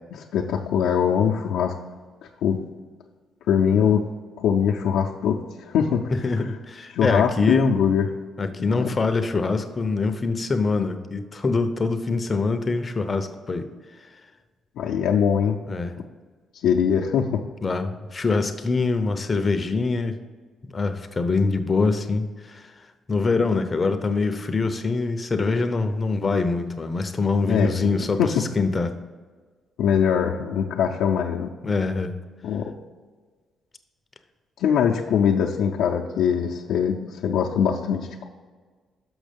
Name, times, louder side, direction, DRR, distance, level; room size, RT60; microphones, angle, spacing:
voice 1, 0.1-1.7 2.4-2.6 3.5-4.1 4.4-6.0 6.9-8.1 8.7-9.0 14.8-15.6 16.6-17.4 27.5-28.4 29.8-31.5 32.4-32.7 34.6-38.3, left 8 dB, 80° left, -1 dB, 0.6 m, -22 dB
voice 2, 6.1-7.8 8.4-13.7 15.7-16.0 17.6-20.2 20.6-29.0 31.6-32.1, left 3 dB, 30° left, 8 dB, 0.6 m, -24 dB
6.4 x 6.2 x 5.2 m, 1.4 s
cardioid pair, 90°, 0 cm